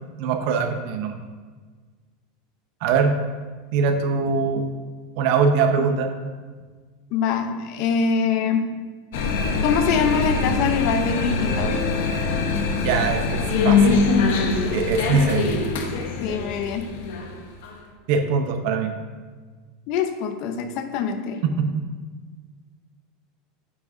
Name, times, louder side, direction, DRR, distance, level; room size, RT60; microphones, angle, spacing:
voice 1, 0.2-1.2 2.8-3.2 3.7-4.6 5.2-6.1 12.8-14.0 14.3-14.4 14.7-15.5 18.1-18.9 21.4-21.7, right 5 dB, 55° right, 6 dB, 0.8 m, -22 dB
voice 2, 7.1-8.7 9.6-11.8 16.2-16.9 19.9-21.4, left 6 dB, 50° left, 7 dB, 0.6 m, -24 dB
sound 1, 9.1-17.8, left 4 dB, 75° left, 0.9 m, -23 dB
9.1 x 6.1 x 2.7 m, 1.5 s
supercardioid pair, 155°, 0 cm